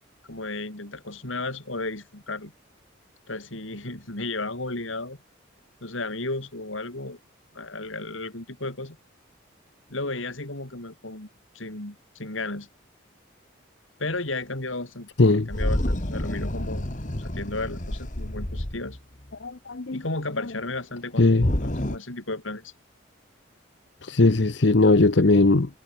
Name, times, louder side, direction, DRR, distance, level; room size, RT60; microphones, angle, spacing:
voice 1, 0.3-2.5 3.3-5.2 5.8-7.2 7.5-9.0 9.9-11.3 11.5-12.7 14.0-15.1 15.3-16.9 17.2-19.0 19.9-22.7, left 2 dB, 75° left, 3.9 m, -33 dB
sound 1, 15.5-19.3 21.4-22.0, left 1 dB, 40° left, 2.1 m, -28 dB
voice 2, 19.4-20.0 21.2-21.5 24.0-25.8, left 2 dB, 60° left, 0.9 m, -19 dB
head